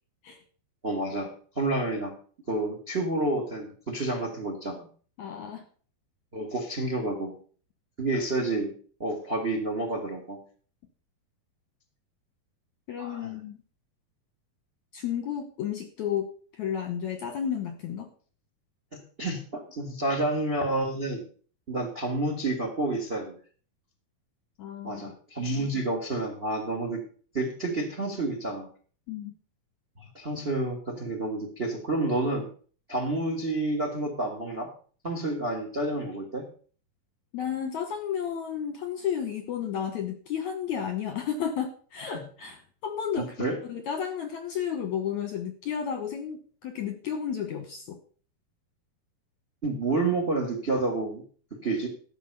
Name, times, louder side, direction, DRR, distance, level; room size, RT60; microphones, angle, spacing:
voice 1, 0.8-2.1 2.5-4.9 6.3-7.4 8.0-8.7 9.0-10.4 13.0-13.3 18.9-21.2 21.7-23.3 24.8-27.0 27.3-28.7 30.1-32.5 32.9-34.7 35.0-36.5 43.1-43.6 49.6-51.2 51.6-51.9, right 2 dB, 80° right, 5 dB, 0.5 m, -29 dB
voice 2, 5.2-5.6 12.9-13.6 14.9-18.1 24.6-25.1 29.1-29.3 37.3-48.0, left 8 dB, 70° left, 7 dB, 1.8 m, -32 dB
13.5 x 5.8 x 6.6 m, 0.43 s
omnidirectional pair, 4.7 m